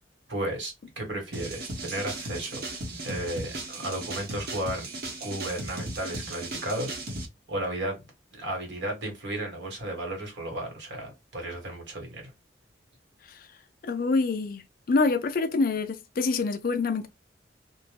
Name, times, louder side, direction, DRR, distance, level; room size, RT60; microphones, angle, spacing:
voice 1, 0.3-2.6 3.0-4.9 5.2-7.0 7.5-8.0 8.4-12.3, right 1 dB, 75° right, 1.2 m, -34 dB
sound 1, 1.3-7.2, right 2 dB, 55° right, 0.8 m, -36 dB
voice 2, 13.8-14.6 14.9-17.1, left 3 dB, 50° left, 0.4 m, -26 dB
2.6 x 2.1 x 3.2 m
head